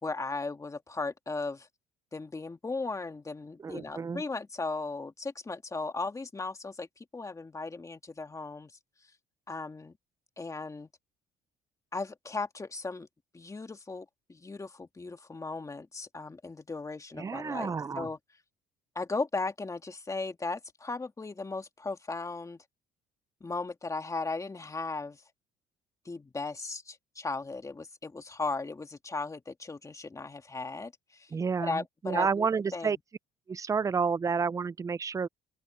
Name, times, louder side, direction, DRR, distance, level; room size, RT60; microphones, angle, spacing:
voice 1, 0.0-1.7 2.1-6.9 7.1-8.7 9.5-9.9 10.4-10.9 11.9-13.1 13.3-18.2 19.0-22.6 23.4-25.2 26.1-31.3 31.6-33.0, left 3 dB, 20° left, 2.2 m, -37 dB
voice 2, 3.6-4.2 17.2-18.1 31.3-33.0 33.5-35.3, right 5 dB, 20° right, 0.4 m, -30 dB
open air
cardioid pair, 110°, 17 cm